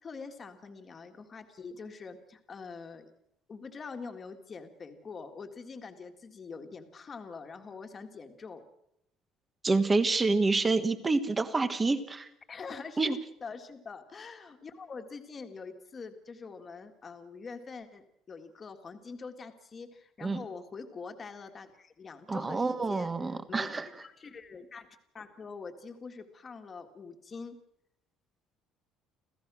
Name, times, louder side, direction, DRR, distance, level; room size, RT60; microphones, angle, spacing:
voice 1, 0.0-3.1 3.5-8.7 12.5-23.7 24.0-24.9 25.1-27.6, left 4 dB, 25° left, 6 dB, 1.9 m, -44 dB
voice 2, 9.6-12.3 13.0-13.2 20.2-20.4 22.3-23.9, right 3 dB, 15° right, 12 dB, 1.3 m, -27 dB
27.0 x 15.5 x 6.2 m, 0.79 s
cardioid pair, 170°, 0 cm